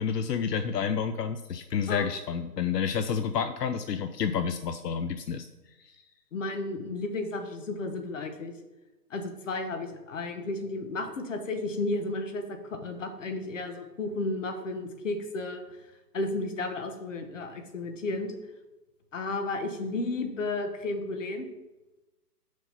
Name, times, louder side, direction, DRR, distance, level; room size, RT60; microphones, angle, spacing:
voice 1, 0.0-5.4 5.8-6.0, left 7 dB, 80° left, 9 dB, 0.7 m, -29 dB
voice 2, 6.3-8.5 9.1-15.6 16.1-18.4 19.1-21.5, left 2 dB, 50° left, 6 dB, 1.2 m, -33 dB
6.3 x 5.3 x 5.6 m, 1.1 s
hypercardioid pair, 170°, 48 cm